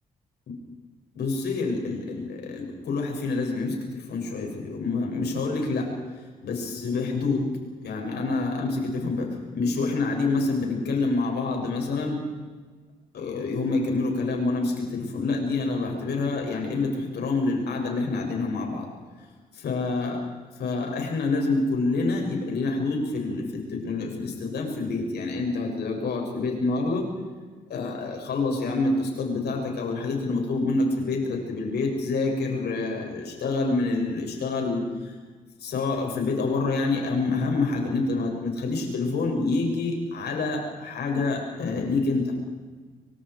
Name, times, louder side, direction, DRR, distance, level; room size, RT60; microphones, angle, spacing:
voice 1, 1.2-5.9 6.4-7.5 7.8-12.2 13.1-18.9 19.5-20.2 20.6-27.0 27.7-35.1 35.6-42.3, left 3 dB, 70° left, 1 dB, 7.5 m, -27 dB
28.0 x 25.0 x 5.0 m, 1.4 s
hypercardioid pair, 45°, 18 cm